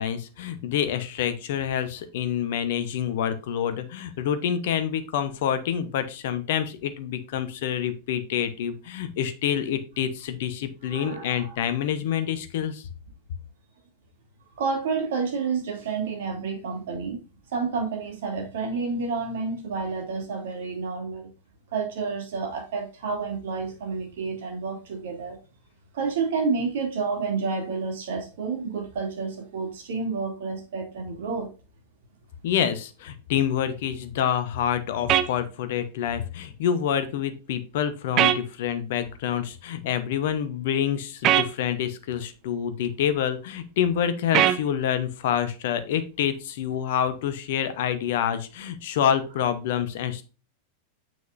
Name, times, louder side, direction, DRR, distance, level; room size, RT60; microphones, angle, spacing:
voice 1, 0.0-12.8 32.4-50.2, left 9 dB, 55° left, 11 dB, 0.9 m, -27 dB
voice 2, 10.9-11.5 14.6-17.2 17.5-21.3 21.7-25.4 25.9-31.5, right 4 dB, 55° right, 2 dB, 2.6 m, -29 dB
sound 1, 35.1-35.3 38.2-38.4 41.2-41.5 44.3-44.6, right 12 dB, 35° right, 0.6 m, -19 dB
7.0 x 6.3 x 2.6 m, 0.33 s
figure-of-eight pair, 90°, 0 cm